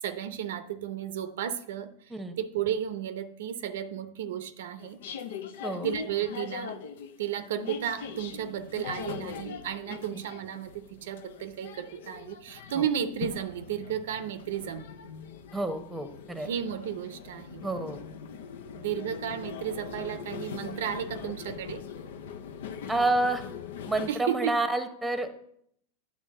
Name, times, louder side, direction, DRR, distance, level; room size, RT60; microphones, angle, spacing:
voice 1, 0.0-1.9 2.4-5.0 5.8-6.8 7.2-14.9 16.4-17.6 18.8-21.8 24.1-24.6, right 9 dB, 80° right, 0.6 m, -33 dB
sound 1, 4.8-24.1, left 7 dB, 80° left, 0.6 m, -41 dB
voice 2, 15.5-16.5 17.6-18.0 22.9-23.4 23.9-25.3, right 2 dB, 5° right, 0.9 m, -29 dB
9.2 x 3.4 x 6.6 m
hypercardioid pair, 120°, 0 cm